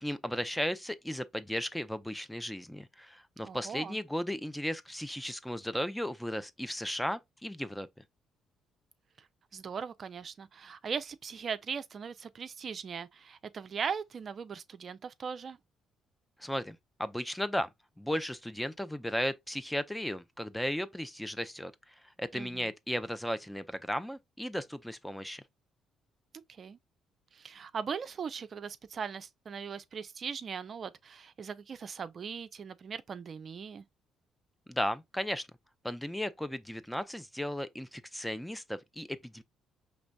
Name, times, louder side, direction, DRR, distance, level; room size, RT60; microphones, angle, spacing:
voice 1, 0.0-7.9 16.4-17.7 18.0-21.7 22.2-25.4 34.7-35.5 35.8-39.4, equal, 5° left, 0.5 m, -35 dB
voice 2, 3.4-4.0 9.5-15.6 22.3-22.7 26.5-26.8 27.3-33.8, right 6 dB, 50° right, 0.4 m, -39 dB
5.0 x 3.3 x 2.2 m
hypercardioid pair, 55°, 0 cm